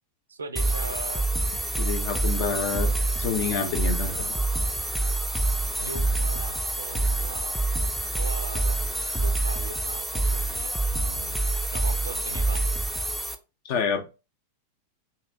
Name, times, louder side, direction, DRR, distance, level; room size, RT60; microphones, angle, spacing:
voice 1, 0.3-1.3 4.5-4.6 5.8-7.6 8.1-8.8 9.2-11.4 11.7-12.6, right 4 dB, 75° right, 0.4 m, -39 dB
sound 1, 0.6-13.4, right 2 dB, ahead, 0.4 m, -26 dB
voice 2, 1.8-4.4 13.6-14.1, left 5 dB, 50° left, 0.6 m, -28 dB
2.9 x 2.9 x 3.3 m
figure-of-eight pair, 90°, 0 cm